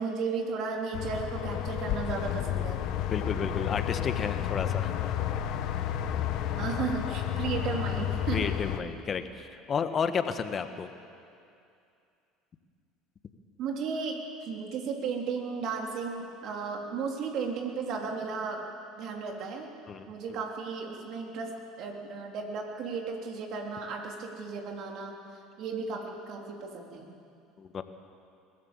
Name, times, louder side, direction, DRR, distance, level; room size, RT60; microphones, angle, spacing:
voice 1, 0.0-2.8 6.5-8.5 13.6-18.6 18.9-19.7 20.1-21.5 21.8-25.2 25.6-27.1, right 5 dB, 55° right, 1 dB, 3.3 m, -34 dB
sound 1, 0.9-8.8, left 11 dB, 60° left, 1.2 m, -31 dB
voice 2, 3.1-5.2 8.3-10.9 19.9-20.4 27.6-27.8, left 6 dB, 40° left, 9 dB, 1.4 m, -32 dB
22.0 x 16.0 x 7.4 m, 2.5 s
hypercardioid pair, 75°, 0 cm